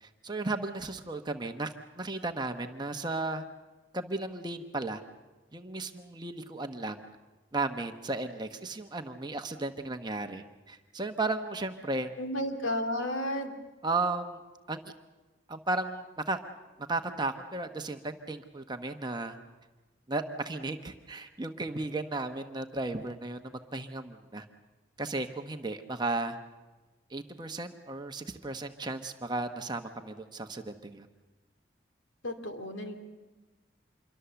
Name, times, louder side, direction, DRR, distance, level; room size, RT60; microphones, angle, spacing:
voice 1, 0.0-3.4 3.9-5.0 5.5-7.0 7.5-12.1 13.8-14.4 14.7-14.8 15.5-16.4 16.8-19.4 20.1-24.4 25.0-26.4 27.1-31.1, right 2 dB, 20° right, 6 dB, 1.0 m, -34 dB
voice 2, 12.2-13.5 32.2-32.9, left 1 dB, 80° left, 4 dB, 2.5 m, -32 dB
26.5 x 23.0 x 6.9 m, 1.2 s
head